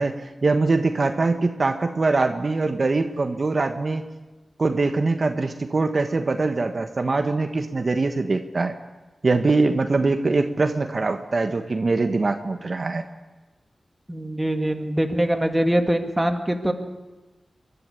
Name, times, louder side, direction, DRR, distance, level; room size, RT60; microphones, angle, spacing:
voice 1, 0.0-4.0 4.6-8.8 9.2-13.0, right 3 dB, 55° right, 6 dB, 1.3 m, -23 dB
voice 2, 14.1-16.7, right 1 dB, 15° right, 5 dB, 2.3 m, -23 dB
24.0 x 11.5 x 9.8 m, 1.2 s
cardioid pair, 55°, 0 cm